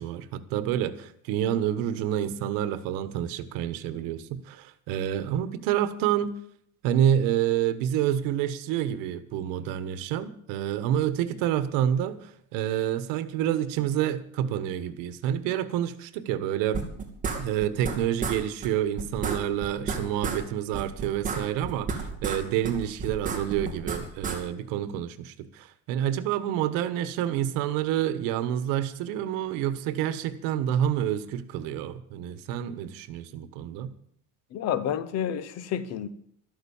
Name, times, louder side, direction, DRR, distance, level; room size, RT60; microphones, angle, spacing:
voice 1, 0.0-6.3 6.8-16.9 17.4-33.9, right 10 dB, 90° right, 1.4 m, -28 dB
sound 1, 16.7-18.0 18.2-18.4 18.6-18.7 19.0-20.4 20.7-22.4 22.6-24.4, right 5 dB, 25° right, 2.6 m, -31 dB
voice 2, 34.5-36.1, left 9 dB, 50° left, 1.1 m, -29 dB
13.5 x 12.5 x 7.2 m
cardioid pair, 165°, 33 cm